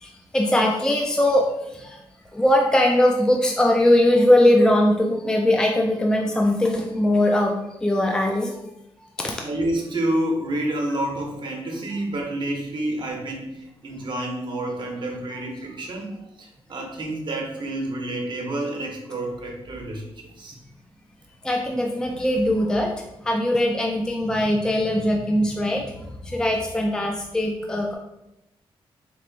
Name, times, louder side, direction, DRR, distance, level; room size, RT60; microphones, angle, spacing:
voice 1, 0.0-1.5 1.7-2.0 2.3-8.5 9.2-9.4 21.4-22.9 23.2-28.0, left 1 dB, 5° left, 0 dB, 0.4 m, -20 dB
voice 2, 9.4-20.0 20.4-20.5, right 1 dB, 50° right, 0 dB, 0.9 m, -29 dB
4.1 x 3.0 x 2.6 m, 0.88 s
cardioid pair, 100°, 10 cm